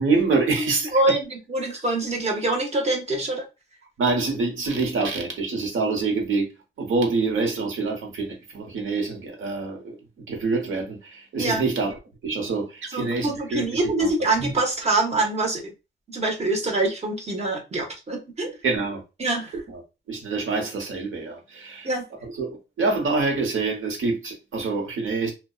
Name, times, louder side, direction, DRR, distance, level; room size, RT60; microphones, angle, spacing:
voice 1, 0.0-1.0 4.0-6.5 6.8-10.0 10.3-13.6 14.0-14.1 14.4-14.5 18.6-19.0 19.7-19.8 20.1-21.9 22.2-25.3, right 3 dB, 85° right, 1.0 m, -26 dB
voice 2, 0.6-3.4 11.4-11.6 12.9-15.7 16.1-18.5 19.2-19.6 21.8-22.0, right 2 dB, 35° right, 0.8 m, -25 dB
2.6 x 2.2 x 2.3 m
wide cardioid pair, 150°, 20 cm